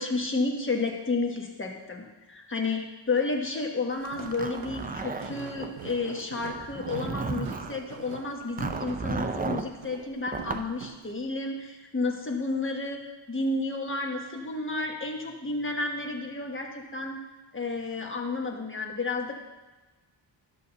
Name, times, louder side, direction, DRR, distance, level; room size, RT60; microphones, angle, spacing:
voice 1, 0.0-17.2 17.5-19.4, left 3 dB, 25° left, 1 dB, 1.2 m, -31 dB
Walk footsteps, 3.9-11.1, right 8 dB, 85° right, 0.7 m, -44 dB
Zipper (clothing), 4.2-5.7 6.5-7.8 8.6-9.7 10.3-10.7, right 4 dB, 20° right, 0.4 m, -33 dB
11.5 x 4.1 x 6.9 m, 1.2 s
wide cardioid pair, 140°, 46 cm